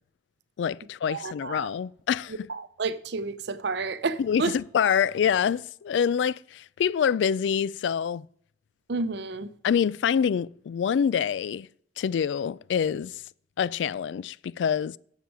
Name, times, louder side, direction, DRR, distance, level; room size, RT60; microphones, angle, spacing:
voice 1, 0.6-2.5 4.2-8.3 9.6-11.7 12.0-13.2 13.6-15.0, left 7 dB, 75° left, 0.3 m, -26 dB
voice 2, 1.1-1.7 2.5-4.5 8.9-9.5, right 3 dB, 65° right, 0.7 m, -30 dB
11.5 x 7.4 x 4.8 m
head